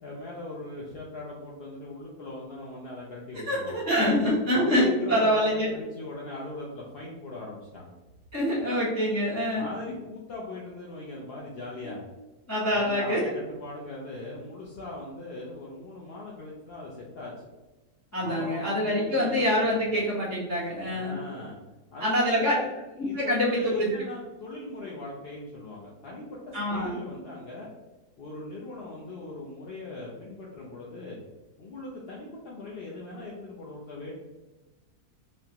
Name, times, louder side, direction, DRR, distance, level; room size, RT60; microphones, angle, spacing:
voice 1, 0.0-3.8 4.5-7.9 9.6-12.0 12.7-17.3 18.2-19.4 20.9-21.6 21.9-22.7 23.0-27.7 28.2-31.2 31.6-34.1, left 2 dB, 55° left, -4 dB, 0.7 m, -40 dB
voice 2, 3.3-5.7 8.3-9.7 11.8-11.9 12.5-13.3 18.1-21.2 22.0-22.5 23.0-23.9 26.5-27.0, equal, 15° left, -5 dB, 0.6 m, -25 dB
3.6 x 2.9 x 2.8 m, 1.1 s
omnidirectional pair, 1.7 m